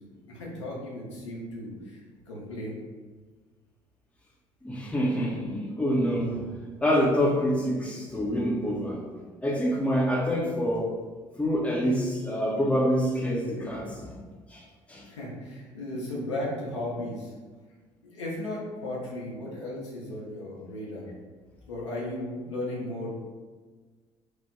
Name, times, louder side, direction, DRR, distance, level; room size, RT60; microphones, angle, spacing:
voice 1, 0.3-2.0 2.3-2.8 15.1-17.3 18.0-21.1 21.7-23.2, left 1 dB, 80° left, -5 dB, 0.7 m, -35 dB
voice 2, 4.6-9.0 9.4-10.9 11.4-14.2 14.5-15.1, equal, 10° left, -2 dB, 0.7 m, -26 dB
2.9 x 2.2 x 3.4 m, 1.4 s
figure-of-eight pair, 55°, 15 cm